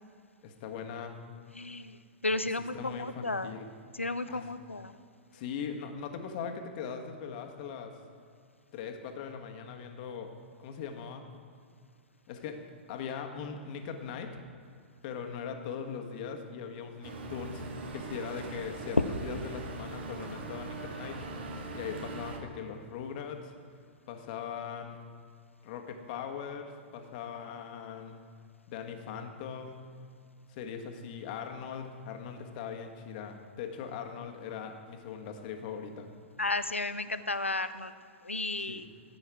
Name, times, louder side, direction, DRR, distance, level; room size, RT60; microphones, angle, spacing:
voice 1, 0.4-1.1 2.6-3.7 4.3-4.5 5.3-8.0 8.7-10.3 10.6-11.3 12.3-12.6 12.9-14.4 15.0-21.2 21.7-23.5 24.1-25.0 25.6-28.2 28.7-29.8 30.5-36.1 38.6-38.8, left 6 dB, 45° left, 4 dB, 1.4 m, -40 dB
voice 2, 1.5-3.5 4.0-4.9 36.4-37.9 38.2-38.9, left 2 dB, 90° left, 12 dB, 0.5 m, -33 dB
sound 1, 17.0-22.4, right 2 dB, 60° right, 1.6 m, -41 dB
14.5 x 8.1 x 4.7 m, 2.2 s
figure-of-eight pair, 105°, 7 cm